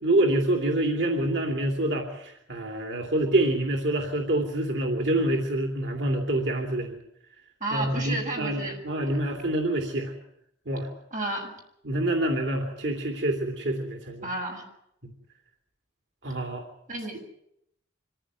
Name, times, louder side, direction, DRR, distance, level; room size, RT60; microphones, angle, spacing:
voice 1, 0.0-6.9 7.7-10.1 10.7-10.9 11.8-14.3 15.0-15.1 16.2-16.6, right 1 dB, 75° right, 3 dB, 2.8 m, -26 dB
voice 2, 7.6-8.8 11.1-11.5 14.2-14.7 16.9-17.2, right 2 dB, 45° right, 1 dB, 6.9 m, -31 dB
25.0 x 15.5 x 9.5 m, 0.76 s
head